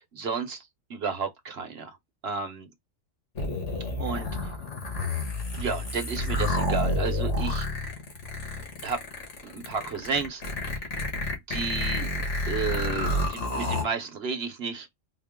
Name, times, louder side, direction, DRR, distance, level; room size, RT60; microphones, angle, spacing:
voice 1, 0.1-0.6 0.9-2.0 2.2-2.7 4.0-4.3 5.6-7.7 8.8-9.0 9.4-10.4 11.5-12.1 12.5-14.9, right 5 dB, 55° right, 0.9 m, -32 dB
sound 1, 3.4-13.8, left 1 dB, 65° left, 1.7 m, -29 dB
4.2 x 2.0 x 3.5 m
omnidirectional pair, 1.4 m